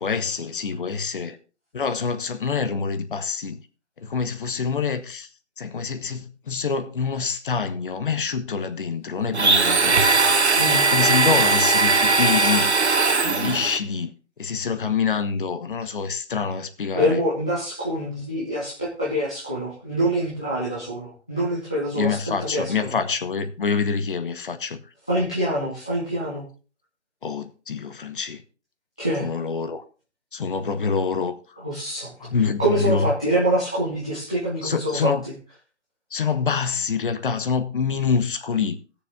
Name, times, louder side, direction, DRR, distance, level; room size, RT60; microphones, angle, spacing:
voice 1, 0.0-1.4 1.7-3.6 4.0-5.3 5.6-9.9 10.9-12.7 13.2-14.1 14.4-17.2 22.0-24.8 27.2-28.4 29.2-29.8 30.3-31.3 32.2-33.0 34.6-35.2 36.1-38.8, left 5 dB, 50° left, 1.2 m, -26 dB
Domestic sounds home sounds, 9.3-13.8, right 3 dB, 75° right, 1.4 m, -19 dB
voice 2, 16.9-22.9 25.1-26.4 29.0-29.3 31.6-32.1 32.6-35.1, right 1 dB, 5° left, 0.4 m, -25 dB
17.0 x 6.8 x 3.6 m
figure-of-eight pair, 140°, 34 cm